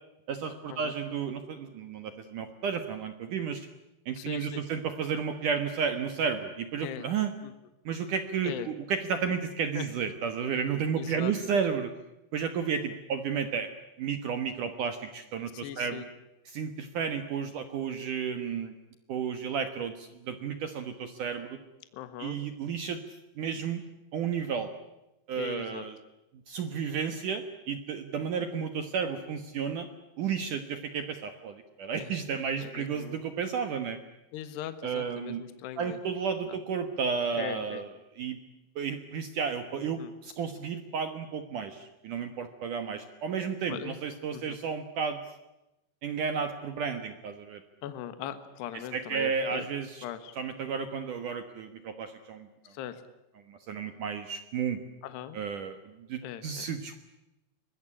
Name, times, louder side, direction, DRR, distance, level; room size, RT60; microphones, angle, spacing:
voice 1, 0.3-3.7 4.1-7.3 7.9-11.9 12.3-13.7 14.0-16.1 16.5-18.7 19.1-21.6 22.2-23.0 23.4-23.8 24.1-24.7 25.3-25.9 26.5-29.9 30.2-34.0 34.8-35.4 35.8-37.9 38.2-38.4 38.8-45.2 46.0-47.6 48.9-50.0 50.4-52.5 53.5-54.8 55.3-55.8 56.1-57.0, right 6 dB, 70° right, 9 dB, 1.9 m, -32 dB
voice 2, 4.1-4.6 6.8-7.1 7.4-7.5 8.4-8.7 9.7-9.9 10.5-10.6 10.9-11.3 15.5-16.1 21.9-22.4 25.4-25.9 32.0-32.2 32.6-33.2 34.3-36.0 36.5-36.6 37.3-37.8 39.8-40.1 43.7-44.0 44.3-44.6 47.8-49.7 50.0-50.3 52.7-53.0 55.0-55.4 56.2-56.7, left 11 dB, 65° left, 11 dB, 3.2 m, -40 dB
24.0 x 20.5 x 10.0 m, 0.96 s
omnidirectional pair, 5.7 m